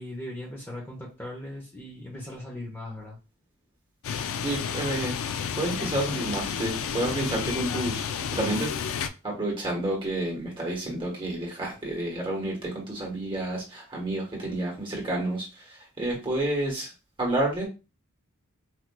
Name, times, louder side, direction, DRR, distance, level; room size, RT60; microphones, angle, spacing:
voice 1, 0.0-3.2, left 1 dB, 10° left, -2 dB, 0.7 m, -39 dB
sound 1, 4.0-9.1, left 7 dB, 65° left, 0.3 m, -31 dB
voice 2, 4.4-5.1 5.5-8.7 9.2-15.7 16.0-16.9 17.2-17.7, right 1 dB, 25° right, -2 dB, 1.1 m, -30 dB
4.4 x 2.4 x 2.2 m, 0.30 s
head